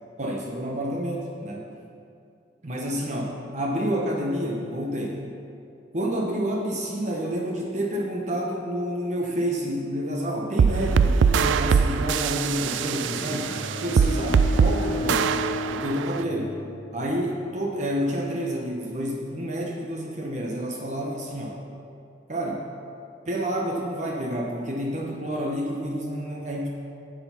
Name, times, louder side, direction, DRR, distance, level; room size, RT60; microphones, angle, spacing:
voice 1, 0.2-1.7 2.6-5.2 5.9-13.6 13.8-14.3 14.6-15.3 15.7-16.6 16.9-21.6 22.3-22.7 23.3-26.7, equal, 40° right, -1 dB, 0.9 m, -29 dB
sound 1, 10.6-16.2, right 6 dB, 85° right, 0.4 m, -22 dB
Bowed string instrument, 13.0-17.2, left 2 dB, 75° left, 1.2 m, -34 dB
8.5 x 8.1 x 5.7 m, 2.5 s
head